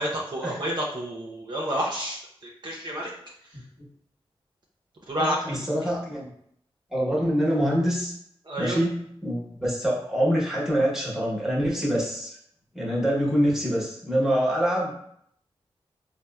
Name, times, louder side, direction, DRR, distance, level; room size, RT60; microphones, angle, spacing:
voice 1, 0.0-3.1 5.1-5.6 8.4-8.8, equal, 50° right, -3 dB, 0.5 m, -29 dB
voice 2, 5.2-6.3 6.9-8.1 8.6-12.4 12.7-14.9, equal, 5° right, -5 dB, 0.9 m, -25 dB
4.0 x 2.0 x 2.2 m, 0.70 s
cardioid pair, 60°, 10 cm